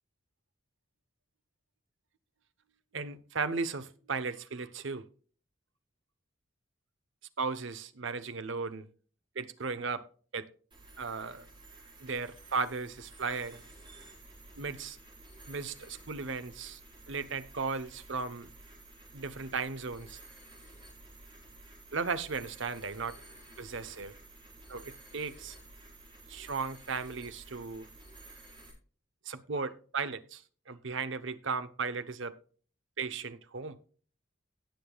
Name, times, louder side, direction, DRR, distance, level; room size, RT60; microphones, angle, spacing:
voice 1, 2.9-5.0 7.4-8.9 9.3-10.0 10.3-10.5 11.0-11.5 12.0-13.6 14.6-15.0 15.5-16.8 17.1-18.5 19.1-20.2 21.9-23.2 23.6-24.1 24.7-25.5 26.3-27.9 29.2-32.3 33.0-33.8, right 4 dB, 65° right, 13 dB, 0.9 m, -36 dB
sound 1, 10.7-28.7, right 2 dB, 25° right, 4.9 m, -53 dB
18.0 x 6.9 x 2.3 m, 0.41 s
head